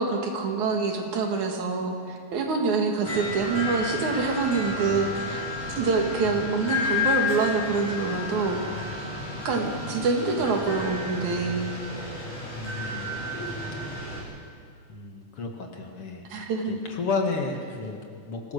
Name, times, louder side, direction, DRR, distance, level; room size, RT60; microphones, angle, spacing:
voice 1, 0.0-5.5 5.8-8.6 9.4-11.7 16.3-16.8, right 4 dB, 75° right, 2 dB, 3.4 m, -26 dB
sound 1, 3.0-14.2, left 3 dB, 85° left, 7.4 m, -32 dB
voice 2, 12.5-13.1 14.9-18.5, left 4 dB, 50° left, 2 dB, 2.6 m, -32 dB
25.0 x 17.0 x 6.7 m, 2.2 s
omnidirectional pair, 3.5 m